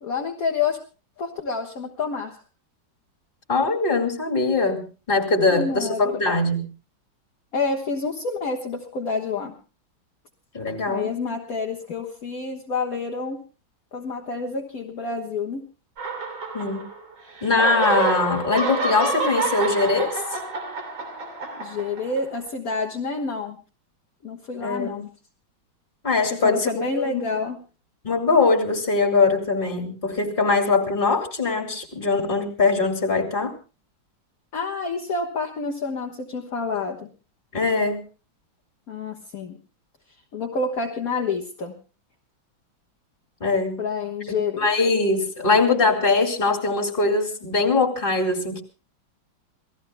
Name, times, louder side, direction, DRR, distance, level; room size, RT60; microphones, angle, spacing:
voice 1, 0.0-0.8 1.2-2.4 5.5-6.2 7.5-9.5 10.9-13.4 13.9-15.7 21.6-23.6 24.2-25.1 26.3-27.6 34.5-37.1 38.9-39.6 40.3-41.7 43.8-44.7, left 4 dB, 50° left, 2 dB, 1.8 m, -28 dB
voice 2, 3.5-6.7 10.5-11.2 16.5-16.8 17.4-20.4 24.6-25.0 26.0-27.2 28.0-33.5 37.5-38.0 43.4-43.8 44.3-48.6, left 3 dB, 25° left, 4 dB, 2.7 m, -22 dB
sound 1, 16.0-17.1 17.4-22.4, right 3 dB, 75° right, 4.0 m, -28 dB
28.0 x 18.5 x 2.2 m, 0.34 s
omnidirectional pair, 2.2 m